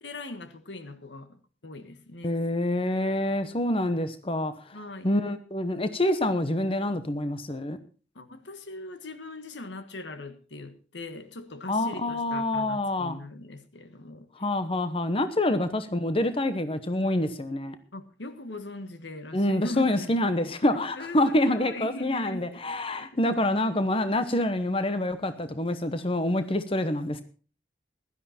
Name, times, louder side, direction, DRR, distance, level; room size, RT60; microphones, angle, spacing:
voice 1, 0.0-2.4 4.7-5.1 8.1-14.3 17.9-20.1 20.7-22.6 22.9-23.5, left 2 dB, 80° left, 1.5 m, -40 dB
voice 2, 2.2-4.8 5.0-7.8 11.7-13.2 14.4-17.8 19.3-27.2, left 1 dB, 30° left, 1.0 m, -26 dB
16.0 x 12.0 x 4.3 m
head